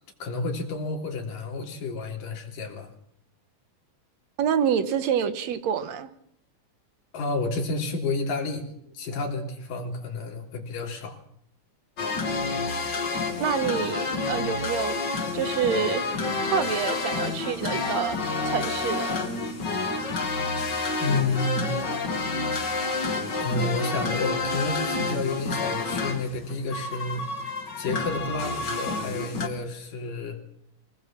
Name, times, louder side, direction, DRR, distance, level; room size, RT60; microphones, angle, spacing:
voice 1, 0.2-2.9 7.1-8.7 8.9-11.2 21.0-21.8 23.4-27.2 27.8-30.4, left 3 dB, 90° left, 1 dB, 4.8 m, -30 dB
voice 2, 4.4-6.1 13.4-15.0 15.3-16.1 16.4-18.2 18.4-19.2, right 8 dB, 65° right, 12 dB, 2.1 m, -27 dB
sound 1, 12.0-29.5, left 3 dB, 35° left, 2.5 m, -29 dB
24.5 x 19.0 x 7.4 m, 0.70 s
omnidirectional pair, 3.8 m